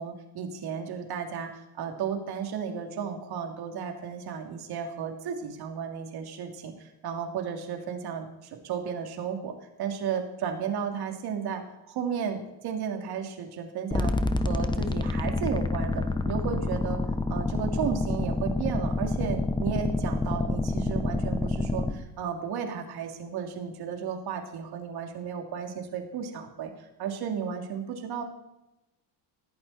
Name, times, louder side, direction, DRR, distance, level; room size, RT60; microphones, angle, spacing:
voice 1, 0.0-1.5 1.8-14.2 14.5-17.0 17.3-26.7 27.0-28.2, right 7 dB, 60° right, 4 dB, 3.1 m, -34 dB
sound 1, 13.9-21.9, left 2 dB, 10° left, 1.0 m, -28 dB
20.0 x 14.5 x 4.4 m, 0.97 s
cardioid pair, 140°, 42 cm